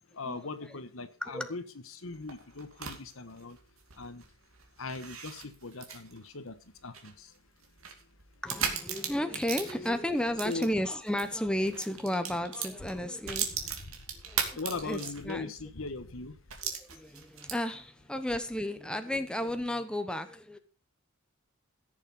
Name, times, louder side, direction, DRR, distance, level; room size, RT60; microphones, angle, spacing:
voice 1, 0.1-1.6 1.9-3.6 4.0-4.2 4.8-7.3 10.4-10.7 13.9-14.0 14.3-16.4, left 3 dB, 70° left, 11 dB, 1.3 m, -40 dB
sound 1, 2.1-11.3 11.6-15.5 15.9-16.0 16.5-17.8, right 7 dB, 70° right, 2.7 m, -38 dB
voice 2, 8.4-13.8 14.1-15.5 16.6-20.6, left 1 dB, 5° left, 8 dB, 1.0 m, -33 dB
16.0 x 7.2 x 5.4 m, 0.35 s
head